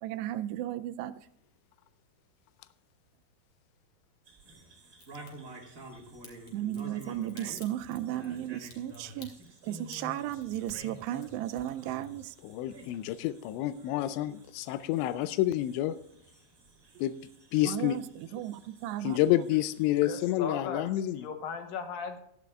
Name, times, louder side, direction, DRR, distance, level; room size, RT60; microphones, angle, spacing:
voice 1, 0.0-1.3 6.5-9.3 9.6-12.4 14.0-14.1 17.7-19.2, right 12 dB, 85° right, 10 dB, 2.6 m, -35 dB
sound 1, 4.2-20.3, right 1 dB, 55° right, 0.9 m, -51 dB
Crack, 5.0-5.3 6.2-12.5 12.8-13.5 13.7-13.8, left 3 dB, 40° left, 2.8 m, -54 dB
voice 2, 12.4-16.0 17.0-17.1 17.5-18.0 19.0-21.2, left 14 dB, 90° left, 13 dB, 2.9 m, -29 dB
voice 3, 19.9-20.9 21.1-22.2, left 5 dB, 70° left, 6 dB, 2.4 m, -37 dB
16.5 x 13.5 x 2.4 m, 0.71 s
omnidirectional pair, 5.1 m